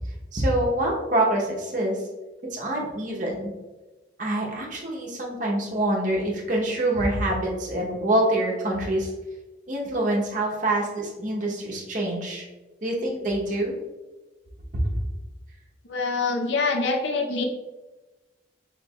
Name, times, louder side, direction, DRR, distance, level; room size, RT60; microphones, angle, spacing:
voice 1, 0.3-2.0 2.5-3.5 4.2-9.1 9.7-12.5 12.8-13.7 14.7-14.9, right 1 dB, 45° right, -2 dB, 0.8 m, -25 dB
voice 2, 15.9-17.4, left 3 dB, 75° left, 3 dB, 0.6 m, -25 dB
4.5 x 3.8 x 2.3 m, 1.2 s
head